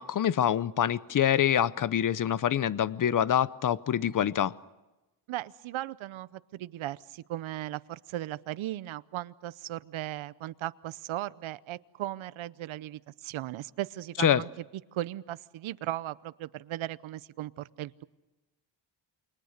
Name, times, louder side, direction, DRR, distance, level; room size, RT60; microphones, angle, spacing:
voice 1, 0.0-4.5 14.2-14.4, left 10 dB, 40° left, 18 dB, 0.8 m, -25 dB
voice 2, 5.3-14.5 14.9-18.0, right 14 dB, 85° right, 17 dB, 0.8 m, -37 dB
29.0 x 22.5 x 6.6 m, 1.1 s
cardioid pair, 120°, 47 cm